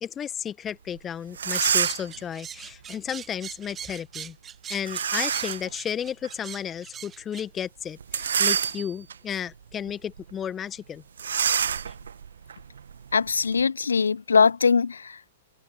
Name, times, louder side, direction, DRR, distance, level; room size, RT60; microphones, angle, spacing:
voice 1, 0.0-4.4 4.7-11.0 11.9-12.0, left 8 dB, 20° left, 1.3 m, -33 dB
sound 1, 1.0-1.1 1.3-2.2 4.9-5.7 6.2-6.3 8.0-9.1 9.7-9.9 10.2-10.3 11.2-13.6, right 7 dB, 70° right, 1.4 m, -27 dB
sound 2, 1.6-7.5, right 8 dB, 20° right, 1.2 m, -41 dB
voice 2, 13.1-15.3, left 5 dB, 80° left, 0.3 m, -22 dB
figure-of-eight pair, 105°, 0 cm